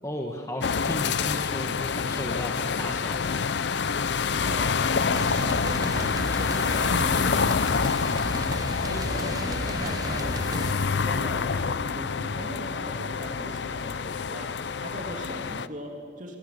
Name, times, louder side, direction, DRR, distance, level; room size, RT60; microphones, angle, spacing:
voice 1, 0.0-3.8, left 1 dB, 15° left, 2 dB, 1.6 m, -35 dB
sound 1, 0.6-15.7, left 5 dB, 65° left, 0.6 m, -27 dB
voice 2, 4.4-16.4, right 1 dB, 40° right, 1 dB, 2.8 m, -40 dB
sound 2, 5.1-10.7, right 1 dB, 20° right, 0.7 m, -34 dB
28.0 x 22.5 x 6.8 m, 2.3 s
head